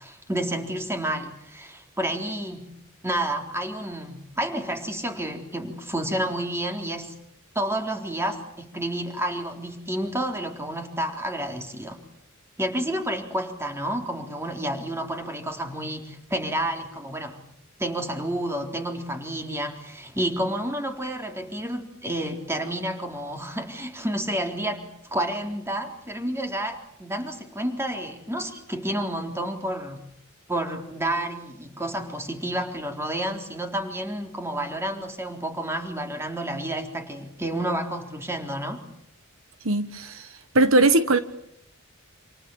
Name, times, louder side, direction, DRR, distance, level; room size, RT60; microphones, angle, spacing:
voice 1, 0.0-2.7 3.0-7.1 7.6-12.0 12.6-17.4 17.8-30.0 30.5-38.8, right 1 dB, 10° right, 4 dB, 3.8 m, -30 dB
voice 2, 39.6-40.3 40.5-41.2, right 2 dB, 70° right, 11 dB, 1.4 m, -19 dB
28.5 x 28.5 x 7.2 m, 0.74 s
head